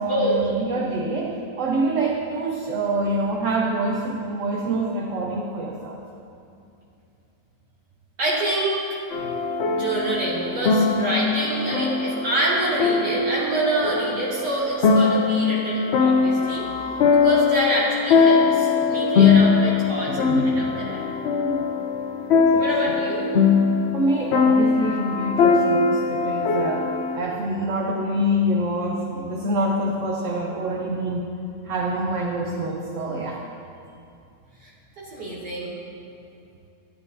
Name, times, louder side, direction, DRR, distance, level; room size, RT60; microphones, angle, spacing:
voice 1, 0.0-6.0 9.2-9.3 19.2-19.4 20.0-20.8 21.4-21.7 22.3-22.7 23.9-31.3 31.6-33.4, right 1 dB, 55° right, -1 dB, 1.0 m, -26 dB
voice 2, 8.2-8.7 9.6-16.6 17.2-21.0 22.6-23.3 35.0-35.7, right 1 dB, 80° right, -8 dB, 3.1 m, -26 dB
sound 1, 9.1-27.2, left 5 dB, 90° left, 0.5 m, -21 dB
13.0 x 10.5 x 2.7 m, 2.6 s
omnidirectional pair, 1.8 m